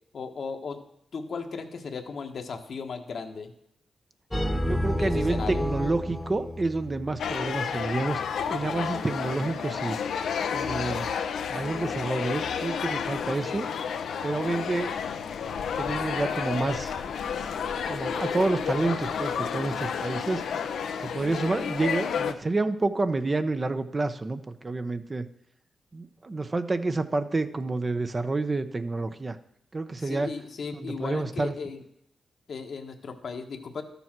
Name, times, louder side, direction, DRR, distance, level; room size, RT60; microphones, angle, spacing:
voice 1, 0.1-0.8 1.1-3.5 5.0-5.6 30.0-31.8 32.5-33.8, left 5 dB, 65° left, 5 dB, 1.3 m, -36 dB
sound 1, 4.3-7.3, equal, 10° left, 1.1 m, -30 dB
voice 2, 4.7-8.2 8.5-10.0 10.5-11.1 11.5-13.7 14.2-14.9 15.8-16.9 17.9-20.4 21.0-25.3 25.9-29.4 29.7-30.3 30.7-31.5, right 3 dB, 35° right, 10 dB, 0.8 m, -29 dB
sound 2, 7.2-22.3, left 7 dB, 85° left, 0.7 m, -31 dB
12.5 x 7.1 x 6.0 m, 0.77 s
cardioid pair, 70°, 0 cm